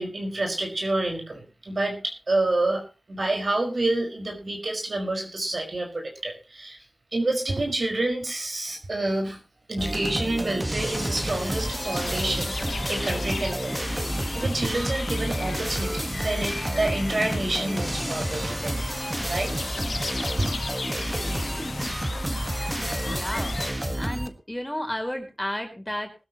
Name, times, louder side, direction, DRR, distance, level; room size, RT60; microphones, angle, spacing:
voice 1, 0.0-2.8 3.1-6.8 7.1-9.4 9.7-13.8 14.3-18.7 19.3-19.5 20.3-20.5, right 2 dB, 65° right, 2 dB, 5.3 m, -28 dB
sound 1, 9.8-24.3, right 1 dB, 25° right, 1.5 m, -30 dB
sound 2, 10.8-23.7, left 4 dB, 80° left, 0.9 m, -36 dB
voice 2, 23.0-26.1, left 1 dB, 15° left, 3 dB, 4.4 m, -32 dB
20.5 x 12.5 x 3.0 m, 0.30 s
wide cardioid pair, 50°, 0 cm